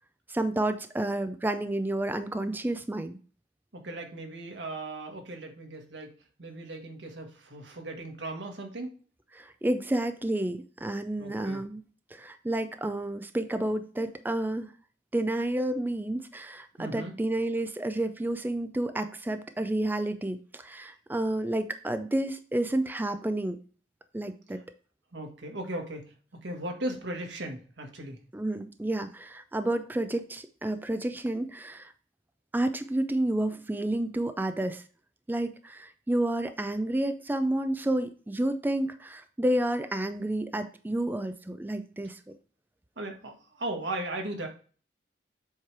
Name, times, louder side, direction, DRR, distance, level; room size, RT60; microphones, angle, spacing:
voice 1, 0.3-3.2 9.3-11.8 12.1-14.7 15.1-23.6 24.1-24.6 28.3-31.9 32.5-34.8 35.3-42.2, right 1 dB, 10° right, 10 dB, 0.4 m, -30 dB
voice 2, 3.7-8.9 11.2-11.6 16.8-17.1 25.1-26.1 26.4-28.2 43.0-44.5, right 1 dB, 85° right, 3 dB, 1.4 m, -37 dB
7.3 x 3.2 x 4.6 m, 0.41 s
head